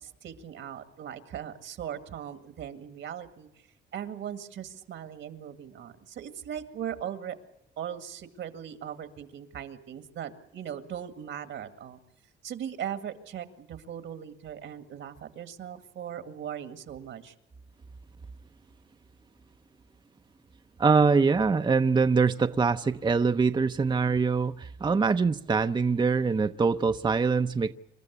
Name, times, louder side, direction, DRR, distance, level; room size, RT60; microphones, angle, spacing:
voice 1, 0.0-3.5 3.9-7.4 7.8-12.0 12.4-17.3, right 9 dB, 75° right, 2.1 m, -39 dB
voice 2, 20.8-27.7, right 4 dB, 20° right, 0.7 m, -24 dB
27.5 x 13.0 x 8.3 m
cardioid pair, 90°, 20 cm